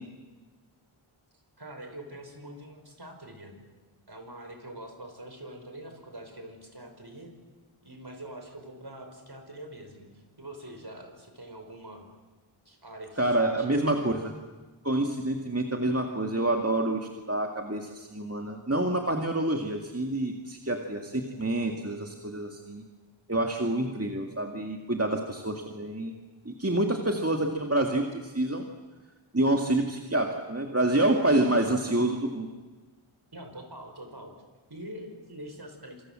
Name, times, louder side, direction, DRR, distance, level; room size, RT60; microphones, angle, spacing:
voice 1, 1.6-3.6 4.1-7.3 7.8-10.1 10.4-12.1 12.7-13.7 33.3-34.3 34.7-36.0, right 1 dB, 50° right, 4 dB, 5.8 m, -44 dB
voice 2, 13.2-14.3 14.8-22.8 23.3-26.1 26.5-28.6 29.3-32.5, right 1 dB, 30° right, 2 dB, 2.1 m, -27 dB
27.0 x 26.5 x 7.6 m, 1.3 s
wide cardioid pair, 50°, 49 cm